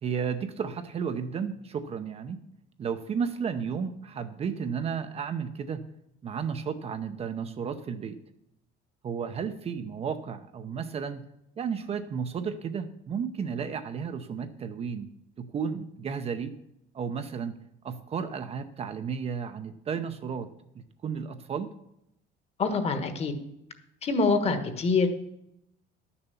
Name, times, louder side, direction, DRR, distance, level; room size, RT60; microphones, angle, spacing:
voice 1, 0.0-2.4 2.8-5.8 6.2-8.2 9.0-11.2 11.6-15.1 15.4-16.5 16.9-17.6 17.8-20.5 20.7-21.7, right 6 dB, 30° right, 9 dB, 0.7 m, -33 dB
voice 2, 22.6-23.3 24.0-25.1, left 4 dB, 30° left, 9 dB, 1.3 m, -25 dB
11.5 x 6.9 x 6.9 m, 0.79 s
cardioid pair, 155°, 19 cm